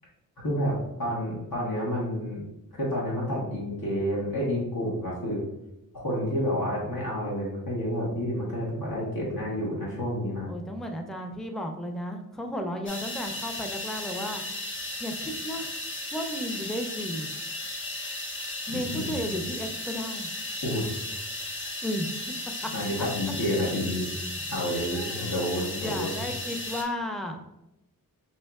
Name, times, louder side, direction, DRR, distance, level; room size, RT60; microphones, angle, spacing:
voice 1, 0.4-2.4 2.7-5.4 5.9-10.5 18.7-19.2 20.6-20.9 22.7-24.1 24.5-26.2, equal, 75° left, -5 dB, 1.1 m, -29 dB
voice 2, 10.5-14.4 15.0-15.7 16.1-17.3 18.7-20.3 21.8-22.1 24.9-25.5 25.8-27.4, equal, ahead, 4 dB, 0.4 m, -34 dB
sound 1, 12.9-26.8, left 1 dB, 35° left, 0.8 m, -35 dB
5.4 x 2.9 x 2.3 m, 0.90 s
wide cardioid pair, 85°, 35 cm